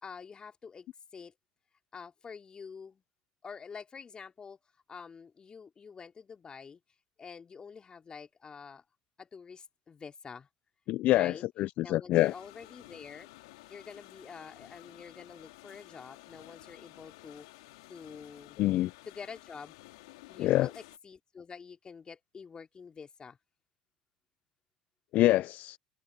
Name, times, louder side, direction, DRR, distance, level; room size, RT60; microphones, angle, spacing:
voice 1, 0.0-0.9 1.1-1.3 1.9-3.0 3.4-4.6 4.9-6.8 7.2-8.8 9.2-10.5 11.1-11.4 11.8-13.3 13.7-17.5 17.9-18.6 19.0-19.8 20.3-23.4, left 6 dB, 30° left, 3.2 m, -47 dB
voice 2, 10.9-12.3 18.6-18.9 20.4-20.7 25.1-25.8, left 16 dB, 55° left, 0.9 m, -26 dB
sound 1, 12.2-21.0, left 22 dB, 70° left, 3.3 m, -53 dB
hypercardioid pair, 70°, 3 cm